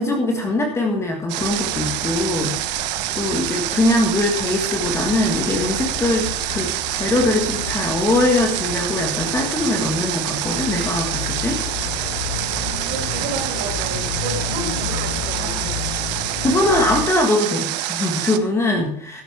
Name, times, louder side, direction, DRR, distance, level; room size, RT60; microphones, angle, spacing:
voice 1, 0.0-2.9 3.1-11.6 16.4-19.2, left 2 dB, 15° left, 2 dB, 1.6 m, -22 dB
Water, 1.3-18.4, right 15 dB, 90° right, 1.1 m, -26 dB
sound 1, 1.4-17.0, left 6 dB, 85° left, 5.8 m, -32 dB
voice 2, 12.8-15.9, right 2 dB, 45° right, 1 dB, 5.2 m, -31 dB
13.0 x 10.5 x 3.5 m, 0.66 s
cardioid pair, 175°, 21 cm